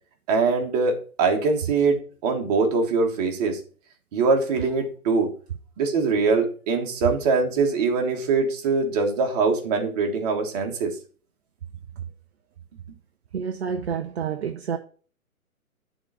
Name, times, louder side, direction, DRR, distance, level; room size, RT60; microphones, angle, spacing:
voice 1, 0.3-3.6 4.1-5.3 5.8-10.9, right 4 dB, 25° right, 1.5 m, -23 dB
voice 2, 13.3-14.8, right 7 dB, 50° right, 0.7 m, -29 dB
9.6 x 4.0 x 4.9 m
figure-of-eight pair, 135°, 43 cm